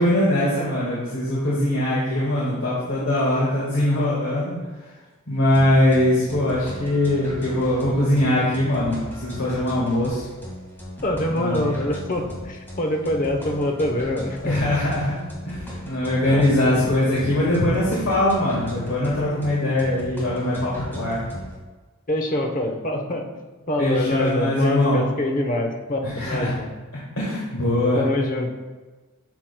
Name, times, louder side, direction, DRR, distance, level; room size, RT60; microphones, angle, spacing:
voice 1, 0.0-4.9 5.3-10.3 11.3-11.8 14.4-15.2 15.4-21.2 23.8-25.0 26.0-26.5 27.2-28.0, left 1 dB, 65° left, -7 dB, 1.7 m, -22 dB
sound 1, 5.5-21.6, equal, 10° left, 1.8 m, -37 dB
voice 2, 11.0-14.6 16.3-16.4 22.1-23.3 23.7-26.7 27.9-28.5, left 1 dB, 40° left, 3 dB, 0.9 m, -25 dB
10.0 x 6.1 x 2.2 m, 1.3 s
head